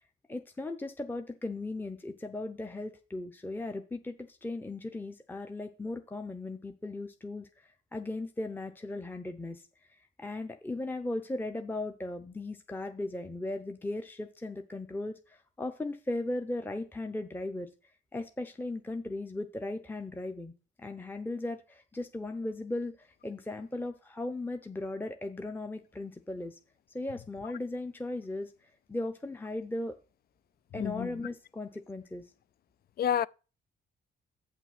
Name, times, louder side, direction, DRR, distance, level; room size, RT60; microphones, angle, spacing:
voice 1, 0.3-17.7 18.1-20.5 20.8-26.6 26.9-29.9 30.7-32.3, left 2 dB, 10° left, 0.8 m, -37 dB
voice 2, 30.8-31.1 33.0-33.3, left 9 dB, 50° left, 0.4 m, -29 dB
7.7 x 6.0 x 6.0 m
cardioid pair, 90°, 20 cm